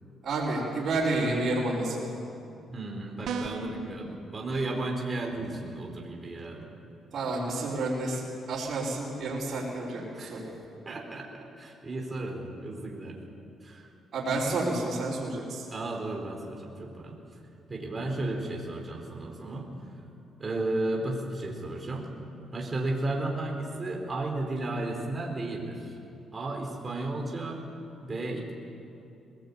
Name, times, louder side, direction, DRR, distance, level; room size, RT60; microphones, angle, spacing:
voice 1, 0.2-2.1 5.3-5.5 7.1-10.5 14.1-15.7, right 2 dB, 60° right, -9 dB, 5.5 m, -30 dB
voice 2, 2.7-6.7 10.1-10.5 10.9-13.2 13.6-13.9 15.7-17.2 17.7-19.7 20.4-22.1 22.5-25.9 26.3-27.6 28.0-28.5, right 2 dB, 30° right, 1 dB, 4.2 m, -34 dB
sound 1, 3.2-3.8, right 4 dB, 75° right, 1.7 m, -33 dB
21.5 x 19.0 x 8.6 m, 2.7 s
cardioid pair, 90°, 0 cm